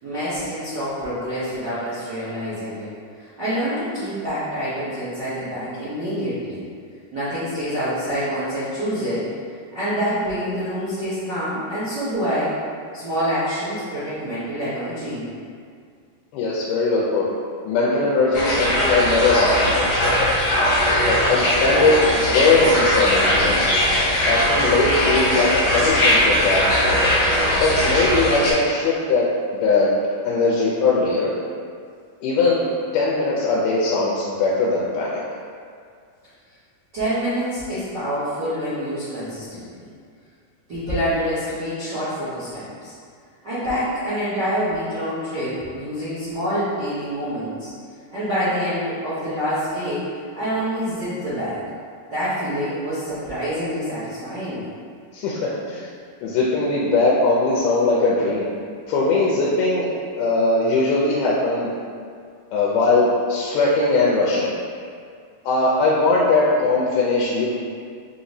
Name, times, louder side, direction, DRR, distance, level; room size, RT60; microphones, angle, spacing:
voice 1, 0.0-2.9 3.2-6.6 7.1-9.3 9.7-12.5 12.9-15.2 36.9-39.9 40.7-42.9 43.4-47.7 48.1-50.1 50.3-51.6 52.1-54.6, equal, 70° right, -13 dB, 1.0 m, -26 dB
voice 2, 16.3-17.3 17.6-19.8 21.0-23.6 24.3-27.0 27.6-29.2 29.5-29.9 30.2-31.3 32.2-35.2 55.1-55.9 56.2-58.5 58.9-61.8 62.5-64.5 65.5-67.5, left 3 dB, 80° left, -5 dB, 2.0 m, -20 dB
sound 1, 18.3-28.5, left 1 dB, 65° left, 1.9 m, -19 dB
5.6 x 3.0 x 2.6 m, 2.2 s
omnidirectional pair, 3.8 m